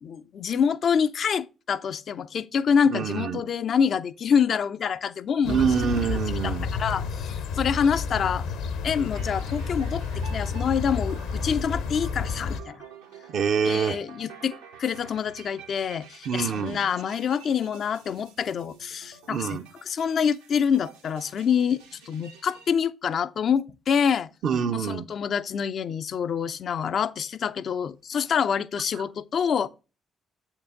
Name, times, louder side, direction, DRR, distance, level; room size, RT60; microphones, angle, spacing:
voice 1, 0.0-5.7 6.4-8.5 8.8-12.8 13.6-19.6 19.9-24.3 24.7-29.7, left 7 dB, 50° left, 0.4 m, -26 dB
voice 2, 2.9-3.4 5.4-6.7 13.3-14.0 16.3-16.8 19.3-19.7 24.4-25.0 28.9-29.0, right 6 dB, 55° right, 0.6 m, -26 dB
sound 1, 5.4-12.6, left 5 dB, 65° left, 0.8 m, -30 dB
sound 2, 8.9-22.7, right 5 dB, 80° right, 1.0 m, -49 dB
8.3 x 4.5 x 3.8 m
figure-of-eight pair, 45°, 0 cm